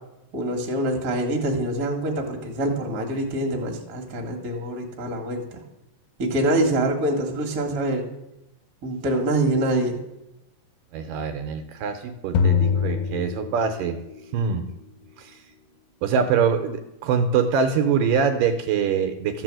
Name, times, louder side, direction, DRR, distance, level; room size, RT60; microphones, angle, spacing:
voice 1, 0.3-5.4 6.2-8.0 8.8-9.9, right 1 dB, 40° right, 2 dB, 1.4 m, -25 dB
voice 2, 10.9-14.0 14.3-14.7 15.2-15.4 16.0-19.4, right 6 dB, 80° right, 7 dB, 2.2 m, -24 dB
sound 1, 12.3-14.1, left 6 dB, 80° left, 2.1 m, -23 dB
14.0 x 4.7 x 7.5 m, 0.90 s
omnidirectional pair, 4.1 m